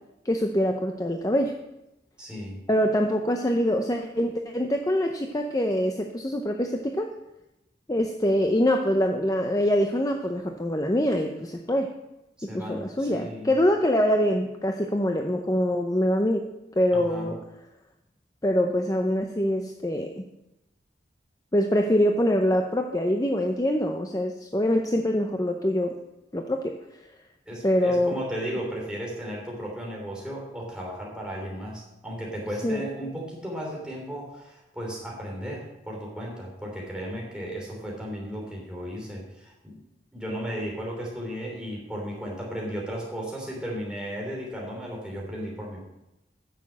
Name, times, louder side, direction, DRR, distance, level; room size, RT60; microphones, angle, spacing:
voice 1, 0.2-1.5 2.7-7.1 7.9-11.9 12.4-16.5 16.8-17.4 18.4-20.2 21.5-25.9 26.3-26.7 27.6-28.2 32.6-32.8, equal, 20° left, 4 dB, 0.6 m, -24 dB
voice 2, 2.2-2.6 12.4-13.5 16.9-17.3 27.5-39.8 40.1-45.8, equal, 5° right, -3 dB, 3.2 m, -35 dB
10.0 x 6.8 x 7.4 m, 0.93 s
head